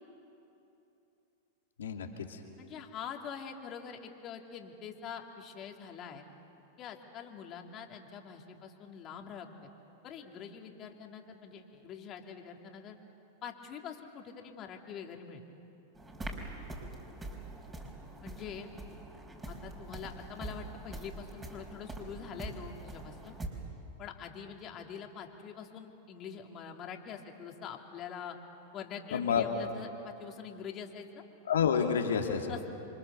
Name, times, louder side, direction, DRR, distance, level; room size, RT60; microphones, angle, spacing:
voice 1, 1.8-2.4 29.1-29.4 31.5-32.5, left 7 dB, 75° left, 3 dB, 2.6 m, -29 dB
voice 2, 2.6-6.2 6.8-9.5 10.0-13.0 13.4-15.4 18.2-18.7 19.5-23.4 24.0-28.4 28.7-31.2 32.5-32.7, left 7 dB, 35° left, 2 dB, 2.8 m, -44 dB
sound 1, 16.0-23.5, right 2 dB, 15° right, 4.7 m, -44 dB
28.5 x 25.0 x 7.0 m, 2.9 s
hypercardioid pair, 100°, 0 cm